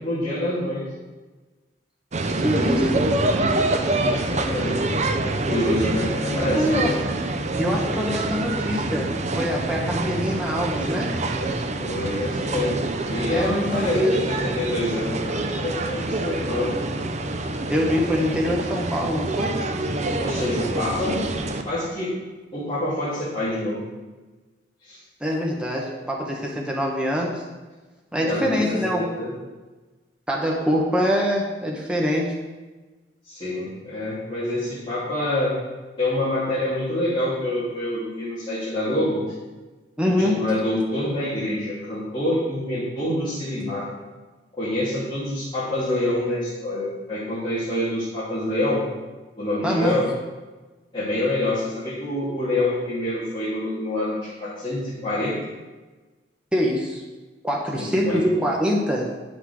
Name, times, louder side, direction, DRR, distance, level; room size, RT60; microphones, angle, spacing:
voice 1, 0.0-0.8 3.9-4.8 5.2-6.9 11.8-16.8 20.2-21.2 21.6-22.1 22.5-23.8 24.8-25.0 28.2-28.8 29.1-29.3 33.3-35.5 36.0-39.3 40.1-43.9 44.5-48.9 49.4-50.1 50.9-55.4 57.7-58.2, left 1 dB, 30° left, -12 dB, 2.7 m, -26 dB
sound 1, 2.1-21.6, right 2 dB, 40° right, 0.7 m, -26 dB
voice 2, 2.4-3.1 6.6-6.9 7.6-11.1 13.3-14.1 17.7-19.6 25.2-27.4 28.1-29.1 30.3-32.3 40.0-40.4 49.6-50.0 56.5-57.0 57.4-59.1, equal, 5° right, -3 dB, 1.1 m, -24 dB
10.0 x 6.0 x 4.8 m, 1.2 s
head